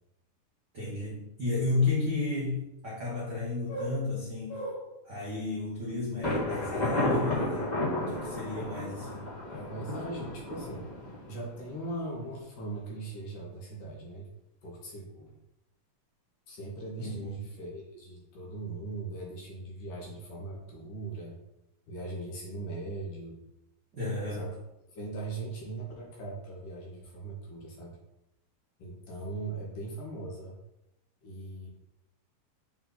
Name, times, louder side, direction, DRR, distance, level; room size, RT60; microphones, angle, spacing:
voice 1, 0.7-4.6 5.1-7.7 8.1-9.3 17.0-17.4 23.9-24.4, left 3 dB, 60° right, -6 dB, 1.1 m, -32 dB
voice 2, 3.7-4.0 4.5-4.9 9.5-10.9 11.3-14.3 14.6-15.3 16.5-21.4 21.9-23.4 24.4-24.6 24.9-28.0 28.8-30.6 31.2-31.7, right 2 dB, 65° left, -3 dB, 3.0 m, -39 dB
Thunder, 6.2-11.9, left 1 dB, 25° left, 0.9 m, -32 dB
7.2 x 3.9 x 3.9 m, 0.87 s
omnidirectional pair, 4.0 m